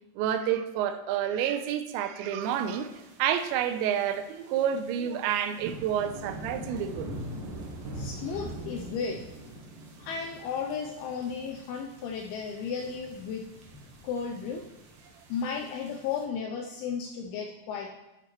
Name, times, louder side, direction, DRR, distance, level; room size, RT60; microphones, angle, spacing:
voice 1, 0.2-7.1, right 9 dB, 90° right, 9 dB, 2.9 m, -29 dB
sound 1, 2.4-16.2, right 1 dB, 65° right, 2.6 m, -44 dB
voice 2, 7.9-9.2 10.0-13.5 13.7-14.6 15.3-17.9, left 6 dB, 85° left, 2 dB, 2.3 m, -34 dB
10.5 x 7.8 x 3.1 m, 0.95 s
omnidirectional pair, 5.1 m